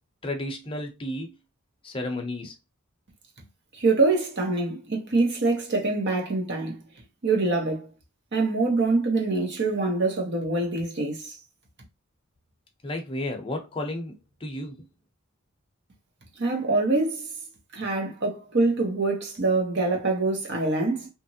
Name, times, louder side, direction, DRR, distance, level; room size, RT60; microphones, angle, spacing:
voice 1, 0.2-1.3 1.8-2.5 12.8-14.1 14.4-14.8, left 1 dB, 25° left, 0.6 m, -32 dB
voice 2, 3.7-6.9 7.2-7.9 8.3-11.4 16.4-17.3 17.7-21.1, right 3 dB, 55° right, 0.9 m, -25 dB
2.9 x 2.5 x 2.7 m
head